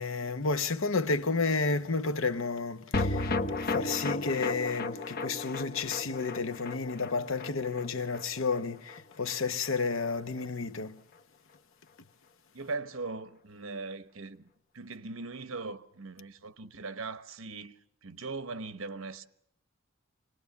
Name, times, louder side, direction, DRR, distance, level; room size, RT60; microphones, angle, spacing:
voice 1, 0.0-11.0, left 4 dB, 70° left, 0.9 m, -31 dB
sound 1, 2.9-9.4 9.6-9.7 10.0-10.1, left 3 dB, 50° left, 1.0 m, -34 dB
voice 2, 12.5-19.2, right 3 dB, 85° right, 1.1 m, -40 dB
26.0 x 19.5 x 8.4 m
head